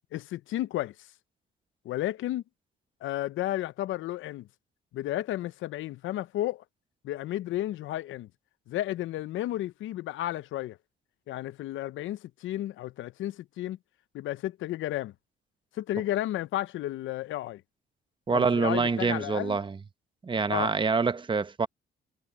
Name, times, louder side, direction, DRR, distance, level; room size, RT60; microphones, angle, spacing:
voice 1, 0.1-1.1 1.8-2.4 3.0-4.5 4.9-6.6 7.0-8.3 8.7-10.8 11.3-13.8 14.1-15.1 15.7-17.6 18.3-19.6 20.5-20.7, left 14 dB, 80° left, 0.6 m, -32 dB
voice 2, 18.3-19.8 20.2-21.7, right 4 dB, 25° right, 1.0 m, -26 dB
cardioid pair, 90°, 20 cm